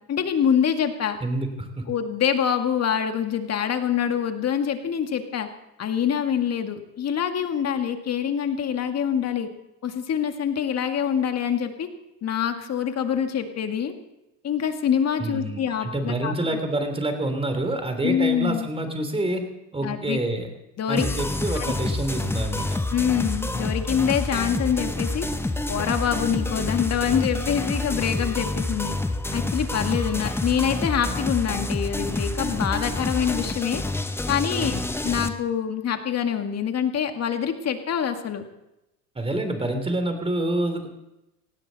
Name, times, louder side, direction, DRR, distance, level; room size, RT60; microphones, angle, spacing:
voice 1, 0.1-1.2 1.9-5.5 5.8-9.5 9.8-11.9 12.2-13.9 14.4-16.3 18.0-18.7 19.8-20.2 20.8-21.1 21.6-21.7 22.9-25.3 25.7-28.9 29.3-33.8 34.3-34.8 35.0-38.4, left 8 dB, 35° left, 6 dB, 2.0 m, -25 dB
voice 2, 1.2-1.8 15.2-19.4 19.7-20.5 20.9-22.8 34.6-34.8 39.1-40.9, right 1 dB, 10° right, 7 dB, 3.0 m, -27 dB
sound 1, 21.0-35.3, left 2 dB, 5° left, 0.9 m, -28 dB
18.5 x 16.0 x 4.1 m, 0.92 s
hypercardioid pair, 100°, 47 cm